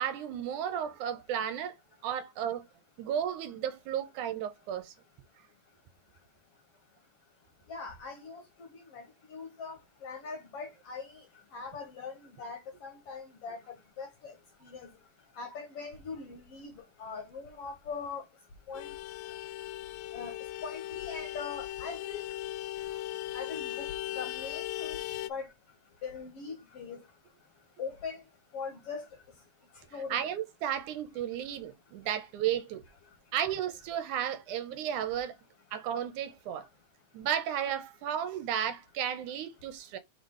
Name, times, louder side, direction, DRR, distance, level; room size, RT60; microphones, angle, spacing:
voice 1, 0.0-1.7 2.0-2.6 3.0-4.9 30.1-32.8 33.3-35.3 35.7-36.7 37.1-40.0, right 9 dB, 75° right, 2.1 m, -33 dB
voice 2, 7.7-11.2 11.5-14.3 14.6-14.9 15.4-18.2 18.7-18.9 20.1-20.3 20.6-22.2 23.3-23.9 24.2-25.0 25.3-25.5 26.0-27.0 27.8-28.2 28.5-29.1 29.9-30.2, left 5 dB, 55° left, 1.9 m, -41 dB
Vehicle horn car horn honking, 18.7-25.3, left 15 dB, 85° left, 2.1 m, -38 dB
5.8 x 3.8 x 5.5 m
omnidirectional pair, 3.8 m